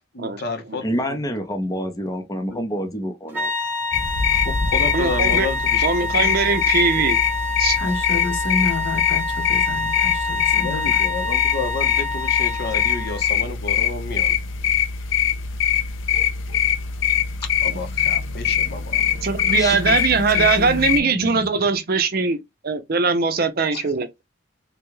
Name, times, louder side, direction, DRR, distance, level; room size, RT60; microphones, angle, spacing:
voice 1, 0.1-1.2 2.5-2.7 4.3-6.6 10.5-14.4 17.6-19.0 23.7-23.9, left 3 dB, 55° left, 0.9 m, -31 dB
voice 2, 0.8-3.5 19.6-19.8, equal, 20° left, 0.6 m, -27 dB
sound 1, 3.3-13.3, left 3 dB, 10° right, 1.0 m, -27 dB
sound 2, 3.9-21.0, left 8 dB, 90° left, 0.6 m, -22 dB
voice 3, 4.9-5.5 5.8-7.2 7.6-7.8 17.7-17.8 19.2-24.1, right 4 dB, 50° right, 0.6 m, -21 dB
voice 4, 7.8-11.0 19.8-21.7, left 3 dB, 75° left, 1.2 m, -30 dB
3.5 x 2.3 x 3.0 m
head